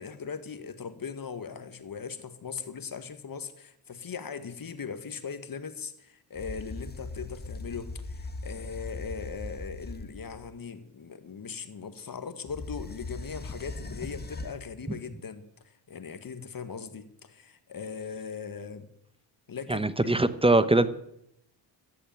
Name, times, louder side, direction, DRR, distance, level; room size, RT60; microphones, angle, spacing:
voice 1, 0.0-18.9 19.5-20.1, left 6 dB, 45° left, 10 dB, 1.7 m, -39 dB
sound 1, 6.4-10.5 12.5-14.7, left 2 dB, 20° left, 1.5 m, -39 dB
voice 2, 19.7-20.9, right 2 dB, 10° right, 13 dB, 1.0 m, -22 dB
14.5 x 6.9 x 9.0 m, 0.76 s
supercardioid pair, 65°, 50 cm